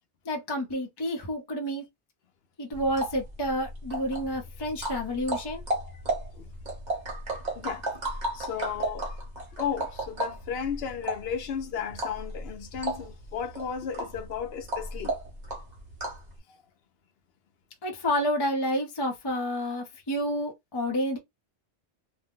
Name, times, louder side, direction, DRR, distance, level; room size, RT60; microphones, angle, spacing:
voice 1, 0.2-1.8 2.6-5.6 17.8-21.2, equal, 25° left, 0.7 m, -29 dB
sound 1, 2.7-16.3, right 1 dB, 40° right, 1.1 m, -34 dB
voice 2, 8.3-9.1 9.5-15.1, left 7 dB, 65° left, 0.7 m, -34 dB
2.6 x 2.1 x 3.6 m
omnidirectional pair, 1.2 m